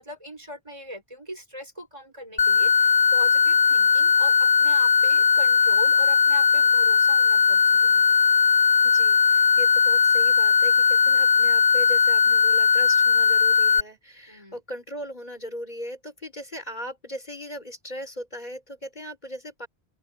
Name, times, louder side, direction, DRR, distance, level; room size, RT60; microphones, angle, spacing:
voice 1, 0.0-8.2 14.3-14.6, equal, 30° right, 5.0 m, -41 dB
sound 1, 2.4-13.8, left 6 dB, 25° left, 0.6 m, -19 dB
voice 2, 8.8-19.7, equal, 40° left, 5.5 m, -38 dB
open air
omnidirectional pair, 1.1 m